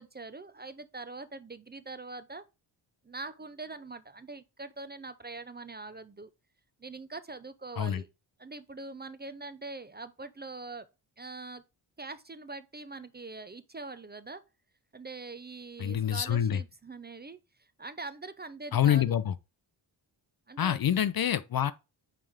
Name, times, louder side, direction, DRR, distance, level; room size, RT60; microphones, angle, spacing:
voice 1, 0.0-2.4 3.0-6.3 6.8-8.1 8.4-10.9 11.2-11.6 12.0-14.4 14.9-19.2 20.5-20.8 21.5-21.7, right 3 dB, 20° right, 0.5 m, -43 dB
voice 2, 15.8-16.6 18.7-19.3 20.6-21.7, left 10 dB, 50° left, 0.5 m, -26 dB
8.6 x 3.4 x 3.5 m
wide cardioid pair, 100°, 48 cm